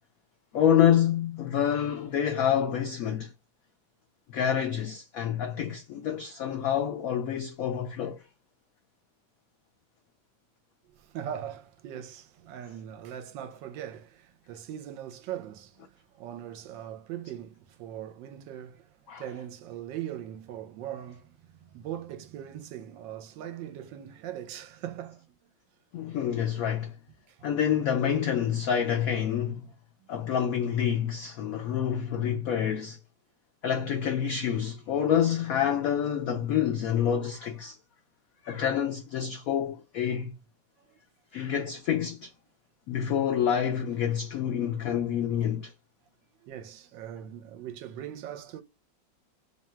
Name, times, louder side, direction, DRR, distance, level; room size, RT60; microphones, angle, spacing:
voice 1, 0.5-3.3 4.3-8.2 19.1-19.2 25.9-26.9 27.4-29.7 30.1-33.0 33.6-37.8 38.4-40.3 41.3-42.3 42.9-45.7, left 9 dB, 85° left, 0.7 m, -27 dB
voice 2, 10.9-25.4 27.3-27.5 40.8-41.0 44.8-44.9 45.3-45.5 46.4-48.6, right 10 dB, 75° right, 1.3 m, -40 dB
3.6 x 2.2 x 4.2 m
omnidirectional pair, 2.1 m